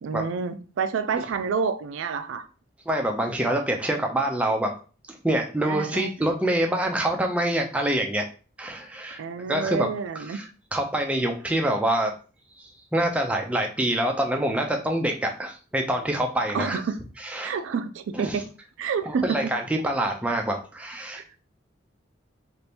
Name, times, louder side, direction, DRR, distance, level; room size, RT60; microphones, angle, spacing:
voice 1, 0.0-2.5 5.6-6.1 9.2-10.4 16.5-17.0 17.4-18.4 18.8-19.5, right 5 dB, 80° right, 11 dB, 0.3 m, -28 dB
voice 2, 2.9-4.7 5.2-8.3 8.6-9.2 9.5-9.9 10.3-10.4 10.7-12.1 12.6-16.8 17.2-17.5 18.1-18.4 19.1-21.2, right 1 dB, 5° right, 2 dB, 0.4 m, -26 dB
2.8 x 2.5 x 3.3 m, 0.36 s
head